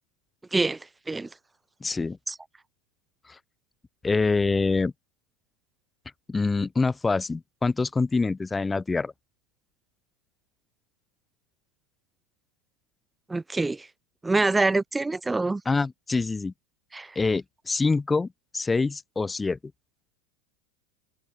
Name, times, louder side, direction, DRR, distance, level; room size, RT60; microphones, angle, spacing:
voice 1, 1.8-2.2 3.3-3.4 4.0-4.9 6.3-9.1 15.7-16.5 17.2-18.3 18.5-19.6, left 3 dB, 10° left, 4.0 m, -25 dB
voice 2, 13.3-13.9 14.2-15.6 16.9-17.2, right 3 dB, 10° right, 5.6 m, -25 dB
supercardioid pair, 150°, 0 cm